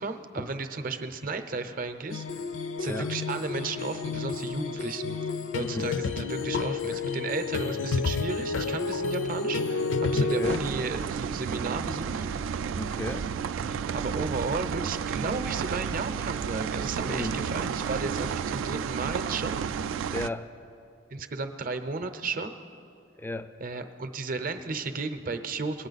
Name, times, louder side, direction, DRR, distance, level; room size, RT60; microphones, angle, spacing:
voice 1, 0.0-2.4 2.8-5.2 5.5-12.3 12.6-12.8 13.6-19.6 21.1-22.6 23.6-25.9, right 3 dB, 45° right, 8 dB, 0.6 m, -34 dB
sound 1, 2.1-10.6, left 4 dB, 75° left, 0.5 m, -30 dB
voice 2, 5.6-5.9 10.1-10.6 12.8-13.3 17.0-17.4 20.1-20.5 23.2-23.5, left 1 dB, 10° left, 11 dB, 0.3 m, -34 dB
sound 2, 10.4-20.3, right 7 dB, 80° right, 0.3 m, -32 dB
21.0 x 9.0 x 4.0 m, 2.6 s
head